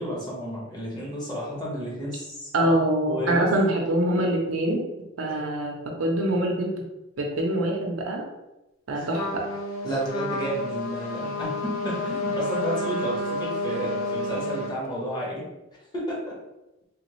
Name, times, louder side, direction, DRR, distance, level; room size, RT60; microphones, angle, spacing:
voice 1, 0.0-2.8 3.1-3.4 3.8-3.9 8.9-9.1 9.8-15.4 15.9-16.4, equal, 20° left, -5 dB, 1.0 m, -31 dB
voice 2, 2.5-4.8 5.2-6.7 7.2-8.2 8.9-9.4, right 1 dB, 85° right, 0 dB, 0.6 m, -24 dB
Trumpet, 9.1-14.8, left 1 dB, 75° left, 0.5 m, -30 dB
3.3 x 2.5 x 3.1 m, 0.98 s
head